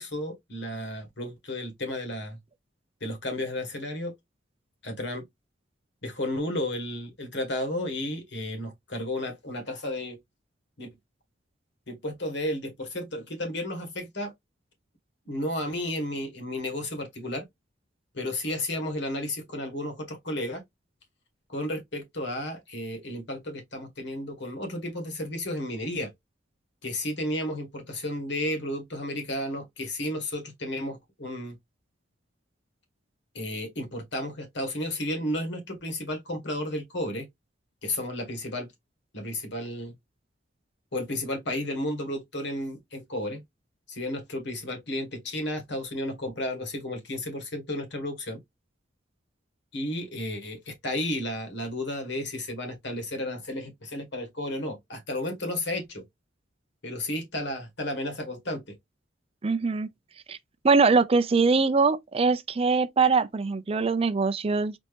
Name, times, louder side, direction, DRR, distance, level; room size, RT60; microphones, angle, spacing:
voice 1, 0.0-2.4 3.0-4.1 4.8-5.2 6.0-10.2 10.8-10.9 11.9-14.3 15.3-17.4 18.1-20.6 21.5-26.1 26.8-31.5 33.3-37.3 37.8-38.7 39.1-39.9 40.9-43.4 43.9-48.4 49.7-56.0 56.8-58.8, left 1 dB, 65° left, 1.7 m, -33 dB
voice 2, 59.4-59.9 60.3-60.4 60.6-64.7, right 4 dB, 30° right, 0.4 m, -22 dB
4.3 x 2.7 x 3.4 m
head